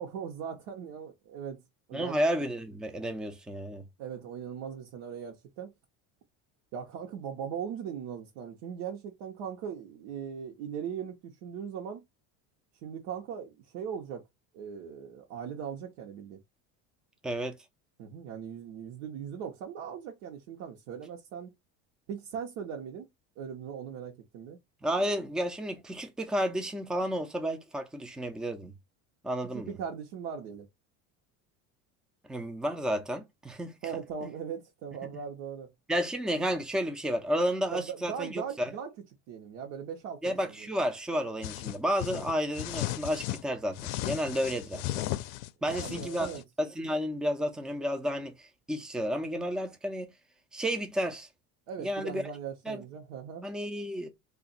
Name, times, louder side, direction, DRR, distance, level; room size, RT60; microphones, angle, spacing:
voice 1, 0.0-1.6 1.9-2.1 4.0-5.7 6.7-12.0 12.8-14.2 14.5-16.4 18.0-21.5 22.1-23.1 23.4-24.6 29.4-30.7 33.8-35.7 37.7-38.9 39.3-40.7 45.7-46.4 51.7-53.5, right 7 dB, 85° right, 1.0 m, -39 dB
voice 2, 1.9-3.8 17.2-17.6 24.8-28.7 29.2-29.7 32.3-33.8 35.9-38.7 40.2-45.1 45.6-46.3 46.6-50.1 50.5-51.3 51.8-52.2 52.7-52.8 53.4-54.1, equal, ahead, 0.3 m, -31 dB
sound 1, 41.4-43.4 43.8-46.4, left 15 dB, 65° left, 0.5 m, -35 dB
2.8 x 2.5 x 3.9 m
cardioid pair, 150°, 35 cm